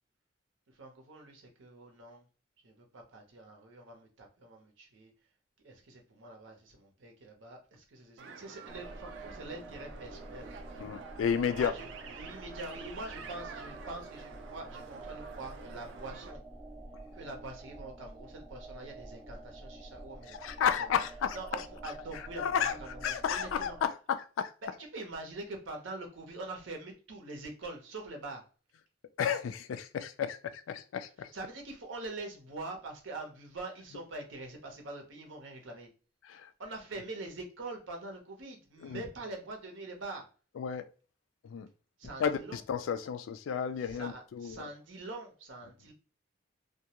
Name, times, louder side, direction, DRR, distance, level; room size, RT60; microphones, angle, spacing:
voice 1, 0.7-2.3 2.6-5.1 5.6-10.5 11.5-11.9 12.2-16.4 17.1-20.9 21.3-23.7 24.6-28.4 31.3-35.9 36.6-40.3 42.0-42.6 43.8-45.9, right 2 dB, 85° right, 0.8 m, -44 dB
sound 1, 8.2-16.3, right 5 dB, 70° right, 0.4 m, -48 dB
sound 2, 8.7-23.8, right 2 dB, 5° right, 0.4 m, -48 dB
voice 2, 10.8-11.7 20.3-21.4 22.4-22.7 23.0-24.5 29.2-31.3 36.2-36.5 38.8-39.0 40.6-40.9 41.4-41.7 42.2-44.7, left 7 dB, 90° left, 0.3 m, -32 dB
2.3 x 2.1 x 2.9 m
head